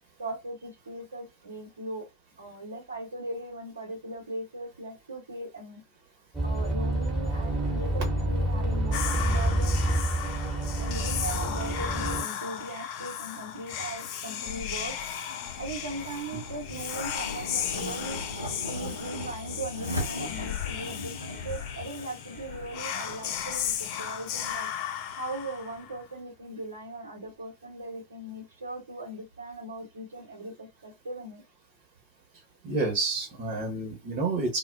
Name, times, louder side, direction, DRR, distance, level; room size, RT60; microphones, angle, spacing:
voice 1, 0.2-2.1 2.4-5.8 6.4-9.8 10.8-14.9 15.6-18.2 18.6-24.7 25.1-31.4, right 1 dB, 70° right, 1.0 m, -39 dB
sound 1, 6.3-12.2, right 1 dB, 10° right, 1.2 m, -28 dB
Whispering, 8.9-26.0, left 9 dB, 45° left, 0.3 m, -35 dB
sound 2, 14.9-25.4, left 1 dB, 85° right, 0.6 m, -40 dB
voice 2, 32.6-34.6, right 3 dB, 45° right, 1.1 m, -29 dB
2.3 x 2.2 x 2.4 m
figure-of-eight pair, 90°, 0 cm